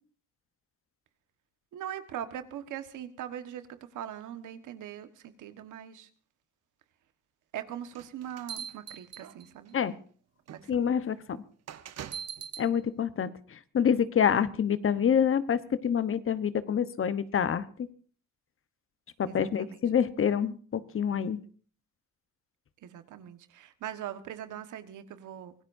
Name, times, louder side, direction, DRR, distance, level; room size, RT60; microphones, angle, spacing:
voice 1, 1.7-3.7 3.9-6.1 7.5-9.7 10.5-10.8 19.2-19.8 20.2-20.3 22.8-25.5, right 10 dB, 80° right, 9 dB, 1.5 m, -41 dB
sound 1, 7.9-9.7 10.5-10.6 11.7-12.7, right 8 dB, 60° right, 1.1 m, -41 dB
voice 2, 10.7-11.4 12.6-17.6 19.2-21.4, left 8 dB, 45° left, 13 dB, 1.1 m, -27 dB
25.0 x 17.5 x 2.7 m, 0.43 s
cardioid pair, 90°, 30 cm